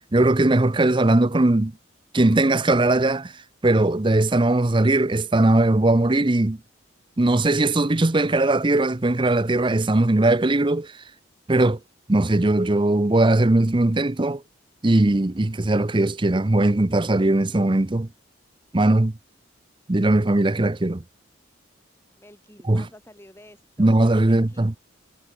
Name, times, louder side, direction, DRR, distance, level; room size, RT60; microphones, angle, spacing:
voice 1, 0.1-1.7 2.1-3.3 3.6-6.6 7.2-10.9 11.5-11.8 12.1-14.4 14.8-18.1 18.7-19.1 19.9-21.0 22.7-22.8 23.8-24.7, right 2 dB, 25° right, 0.7 m, -19 dB
voice 2, 22.2-23.9 24.2-24.7, left 1 dB, 15° left, 6.2 m, -49 dB
head